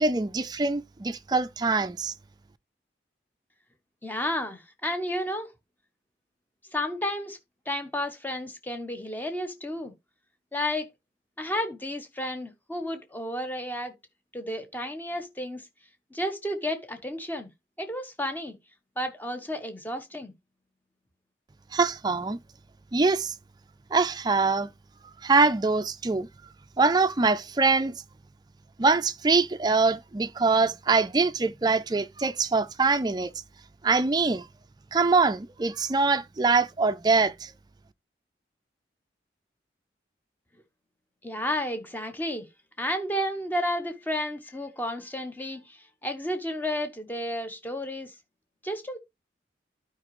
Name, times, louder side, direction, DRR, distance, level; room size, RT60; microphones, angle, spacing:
voice 1, 0.0-2.1 21.7-22.4 22.9-23.3 23.9-24.7 25.2-26.3 26.8-27.9 28.8-33.3 33.8-34.5 34.9-37.5, right 4 dB, 20° right, 0.4 m, -23 dB
voice 2, 4.0-5.5 6.7-7.4 7.7-9.9 10.5-10.9 11.4-13.9 14.3-15.6 16.1-17.5 17.8-18.6 19.0-20.3 41.2-42.5 42.8-48.1 48.6-49.0, left 1 dB, 10° left, 1.1 m, -32 dB
12.0 x 5.1 x 3.1 m
head